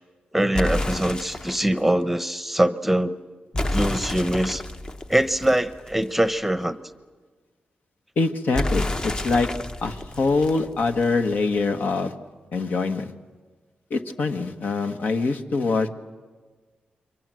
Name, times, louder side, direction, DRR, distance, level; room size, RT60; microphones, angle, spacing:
voice 1, 0.3-3.1 3.7-4.6 5.1-6.8, right 1 dB, 5° right, 11 dB, 0.9 m, -23 dB
sound 1, 0.5-1.8 3.5-6.3 8.5-11.3, left 1 dB, 25° left, 0.8 m, -29 dB
voice 2, 8.2-9.5 9.8-12.1 12.5-13.1 13.9-15.9, left 3 dB, 70° left, 6 dB, 1.5 m, -24 dB
28.0 x 24.0 x 7.7 m, 1.4 s
wide cardioid pair, 115°, 3 cm